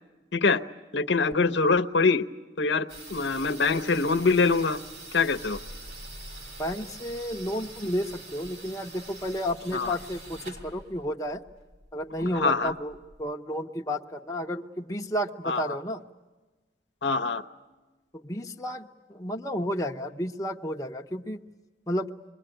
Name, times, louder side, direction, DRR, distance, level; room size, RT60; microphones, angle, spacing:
voice 1, 0.3-0.6 0.9-2.2 2.6-4.8 5.1-5.6 9.7-10.0 12.3-12.7 15.4-15.8 17.0-17.4, left 4 dB, 75° left, 7 dB, 0.9 m, -24 dB
sound 1, 2.9-13.2, right 2 dB, 70° right, 4.0 m, -45 dB
voice 2, 6.6-11.4 11.9-16.0 18.1-21.4 21.9-22.1, equal, 20° left, 2 dB, 0.9 m, -32 dB
27.0 x 22.0 x 9.0 m, 1.2 s
head